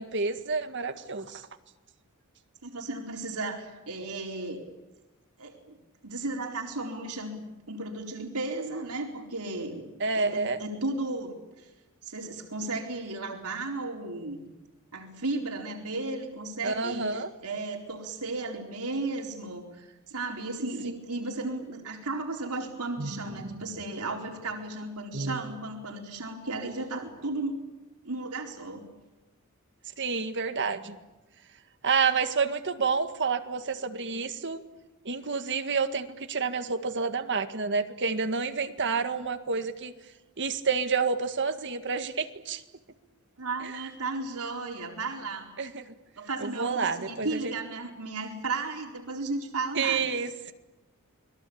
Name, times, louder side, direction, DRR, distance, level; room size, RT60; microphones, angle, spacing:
voice 1, 0.0-1.4 10.0-10.6 16.6-17.3 20.9-21.0 23.0-23.7 25.1-25.4 30.0-31.0 31.8-34.6 35.1-39.9 40.4-42.6 43.6-43.7 45.6-45.8 46.4-47.5 49.8-50.3, right 5 dB, 55° right, 8 dB, 1.9 m, -29 dB
voice 2, 2.6-4.6 5.4-5.8 6.0-7.4 7.7-9.8 10.1-11.7 12.0-14.4 14.9-27.6 28.0-28.8 43.4-45.5 46.2-50.1, right 2 dB, 90° right, 2 dB, 4.3 m, -34 dB
29.0 x 22.0 x 8.7 m, 1.0 s
head